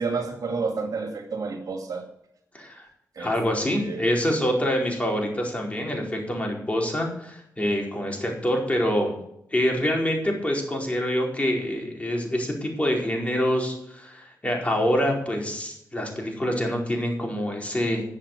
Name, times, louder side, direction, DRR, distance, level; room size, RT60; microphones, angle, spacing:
voice 1, 0.0-2.0 3.2-3.3 3.7-4.1, right 4 dB, 65° right, 5 dB, 2.2 m, -30 dB
voice 2, 3.2-9.1 9.5-18.0, equal, 20° left, 0 dB, 4.5 m, -26 dB
10.5 x 7.7 x 6.7 m, 0.77 s
cardioid pair, 55°, 7 cm